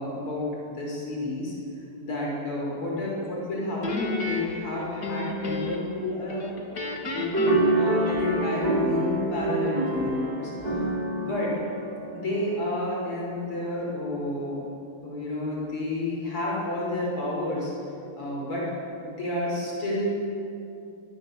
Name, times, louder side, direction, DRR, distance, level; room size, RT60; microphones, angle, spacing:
voice 1, 0.0-1.5 2.0-6.5 7.1-10.8 11.1-11.5 12.1-14.6 15.0-17.7 18.2-18.7 19.0-20.1, left 1 dB, 80° left, -3 dB, 7.0 m, -30 dB
Guitar, 3.8-6.0 6.3-8.6, left 3 dB, 45° left, 2.8 m, -32 dB
sound 1, 7.3-12.9, right 2 dB, 15° right, 4.1 m, -27 dB
23.5 x 22.5 x 7.4 m, 2.7 s
omnidirectional pair, 2.4 m